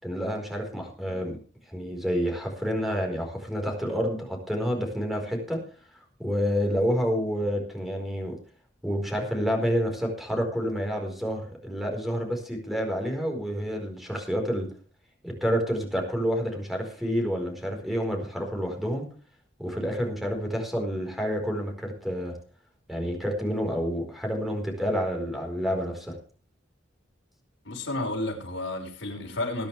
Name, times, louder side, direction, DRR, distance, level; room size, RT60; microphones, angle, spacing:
voice 1, 0.0-1.4 1.7-5.6 6.2-8.4 8.8-14.7 15.2-19.0 19.6-22.3 22.9-26.1, equal, ahead, 4.6 m, -29 dB
voice 2, 27.6-29.7, left 2 dB, 70° left, 5.6 m, -31 dB
21.0 x 10.5 x 3.4 m
head